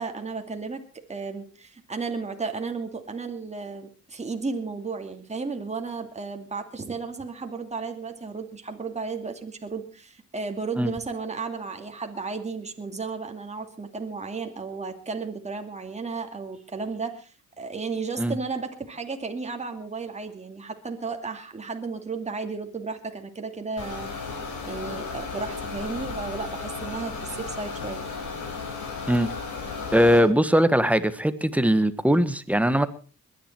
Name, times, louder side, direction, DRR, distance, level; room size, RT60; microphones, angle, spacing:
voice 1, 0.0-24.3 24.6-28.0, right 4 dB, 20° right, 4 dB, 2.5 m, -34 dB
sound 1, 23.8-30.2, left 4 dB, 85° left, 5.1 m, -34 dB
voice 2, 29.9-32.9, equal, 5° right, 13 dB, 1.3 m, -20 dB
21.5 x 10.5 x 4.5 m, 0.37 s
cardioid pair, 90°, 30 cm